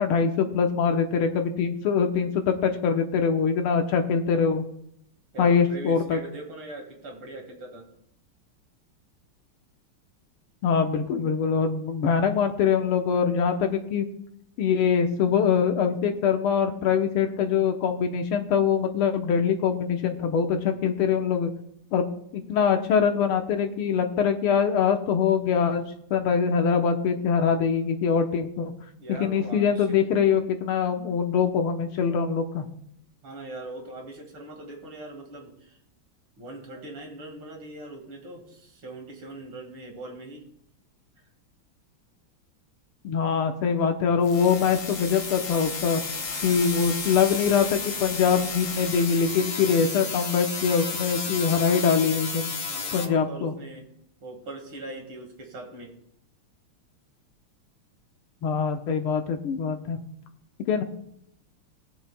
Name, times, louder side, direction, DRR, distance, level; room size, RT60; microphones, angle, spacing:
voice 1, 0.0-4.6 5.4-6.2 10.6-14.1 14.6-21.5 21.9-22.0 22.3-28.7 29.1-32.7 43.0-46.0 46.4-52.5 52.9-53.5 58.4-60.0 60.7-60.8, left 6 dB, 80° left, 5 dB, 1.9 m, -23 dB
voice 2, 5.3-7.9 29.0-30.0 32.1-32.3 33.2-35.8 36.4-40.4 52.7-53.9 54.2-56.0, right 2 dB, 70° right, 1 dB, 2.7 m, -41 dB
sound 1, 44.2-53.1, left 5 dB, 60° left, 0.6 m, -32 dB
20.0 x 6.9 x 2.3 m, 0.73 s
omnidirectional pair, 2.4 m